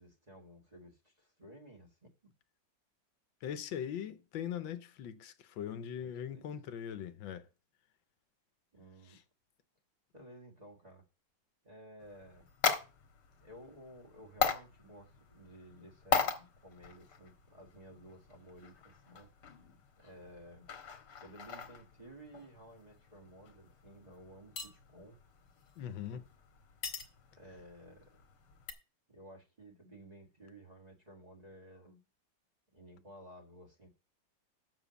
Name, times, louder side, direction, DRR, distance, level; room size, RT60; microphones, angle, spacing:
voice 1, 0.0-2.3 6.0-6.4 8.7-9.2 10.1-11.0 11.6-12.5 13.4-19.3 20.0-20.7 21.2-25.2 26.1-26.2 27.3-28.2 29.1-32.0 32.7-33.9, right 1 dB, 20° right, 1.7 m, -55 dB
voice 2, 3.4-7.5 9.1-9.2 25.8-26.2, left 9 dB, 85° left, 1.6 m, -41 dB
sound 1, 12.0-28.7, left 6 dB, 65° left, 1.9 m, -40 dB
7.2 x 5.9 x 6.9 m
omnidirectional pair, 2.1 m